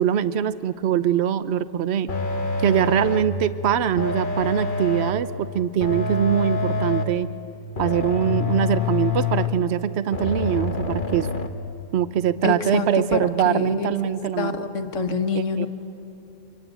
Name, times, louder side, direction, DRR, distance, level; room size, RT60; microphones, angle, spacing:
voice 1, 0.0-2.1 2.6-7.3 7.8-11.3 11.9-14.5 15.3-15.7, right 9 dB, 55° right, 14 dB, 1.0 m, -23 dB
sound 1, 2.1-3.4 4.0-5.3 5.8-7.3 7.8-9.7 10.1-11.5, left 3 dB, 40° left, 1.3 m, -26 dB
voice 2, 12.4-15.7, left 4 dB, 65° left, 7 dB, 1.7 m, -27 dB
25.0 x 24.5 x 9.0 m, 3.0 s
omnidirectional pair, 1.4 m